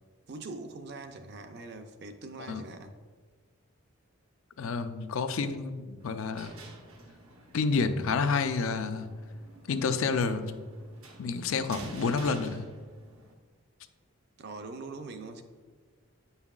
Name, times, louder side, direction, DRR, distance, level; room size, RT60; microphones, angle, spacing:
voice 1, 0.3-2.9 14.4-15.4, right 3 dB, 50° right, 6 dB, 0.5 m, -42 dB
voice 2, 4.6-6.6 7.5-9.1 9.7-10.6 11.2-12.7, left 4 dB, 70° left, 9 dB, 0.4 m, -29 dB
sound 1, 6.0-13.3, right 2 dB, 75° right, 0.9 m, -50 dB
8.5 x 5.6 x 2.4 m, 1.5 s
head